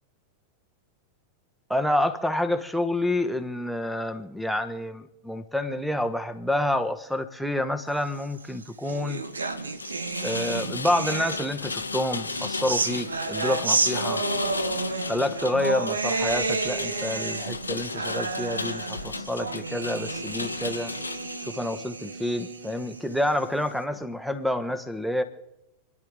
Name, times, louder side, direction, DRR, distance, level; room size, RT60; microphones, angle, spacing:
voice 1, 1.7-9.2 10.2-14.2 15.1-20.9 21.4-25.2, left 1 dB, ahead, 10 dB, 1.2 m, -28 dB
sound 1, 8.3-11.7 12.2-23.7, right 3 dB, 75° right, 1.0 m, -31 dB
Rain, 9.2-21.5, left 4 dB, 80° left, 0.9 m, -35 dB
29.0 x 10.5 x 3.8 m, 0.91 s
figure-of-eight pair, 90°, 0 cm